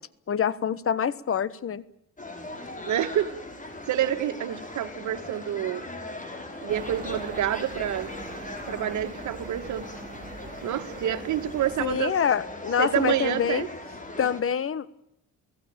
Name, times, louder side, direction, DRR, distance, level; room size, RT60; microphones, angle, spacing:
voice 1, 0.3-1.8 11.8-13.7 14.2-15.0, left 8 dB, 45° left, 19 dB, 1.3 m, -26 dB
sound 1, 2.2-14.4, left 2 dB, 25° left, 5.8 m, -39 dB
voice 2, 2.9-3.3 3.9-5.8 6.6-8.1 8.7-9.9 10.6-12.1 12.8-13.7, right 11 dB, 75° right, 8 dB, 2.1 m, -28 dB
sound 2, 6.7-12.0, right 3 dB, 25° right, 2.8 m, -43 dB
29.0 x 17.0 x 8.9 m, 0.81 s
cardioid pair, 90°, 30 cm